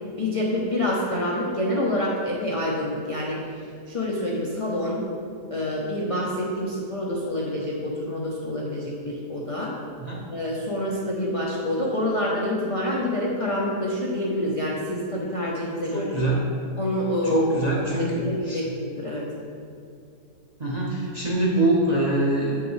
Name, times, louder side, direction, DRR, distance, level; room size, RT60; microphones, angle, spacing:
voice 1, 0.2-3.4 3.9-5.0 5.5-9.7 10.3-16.1 16.8-17.5 17.9-19.3, left 1 dB, 50° left, -4 dB, 0.4 m, -27 dB
voice 2, 15.9-16.4 17.2-18.6 20.6-22.6, right 1 dB, 35° right, -5 dB, 0.7 m, -24 dB
7.8 x 5.8 x 3.2 m, 2.5 s
omnidirectional pair, 1.8 m